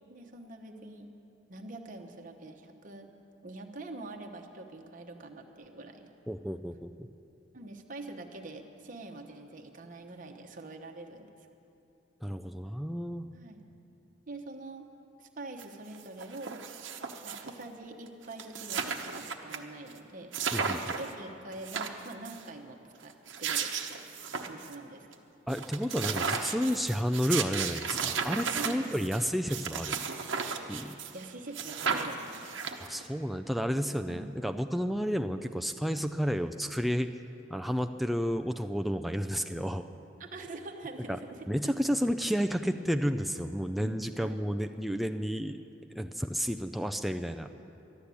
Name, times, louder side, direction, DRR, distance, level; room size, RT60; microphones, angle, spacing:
voice 1, 0.1-1.1 1.5-3.1 3.4-6.1 7.5-11.3 13.3-13.6 14.3-14.9 15.2-16.6 17.2-20.3 21.0-23.1 23.4-24.0 24.4-25.1 28.5-29.0 30.8-32.6 34.1-34.2 40.2-41.5 43.8-44.4, right 2 dB, 45° right, 3 dB, 1.0 m, -45 dB
voice 2, 6.3-7.1 12.2-13.3 20.5-21.0 25.5-30.0 30.7-31.0 32.8-37.1 37.5-39.8 41.1-41.2 41.5-45.6 45.9-47.5, equal, ahead, 5 dB, 0.3 m, -31 dB
sound 1, 15.6-15.7 15.9-17.6 18.1-18.2 18.3-19.6 19.9-20.0 20.3-21.1 21.5-22.4 23.1-24.7 25.1-25.2 25.5-31.2 31.5-33.1, right 6 dB, 75° right, 0.9 m, -34 dB
12.0 x 11.5 x 8.3 m, 2.8 s
head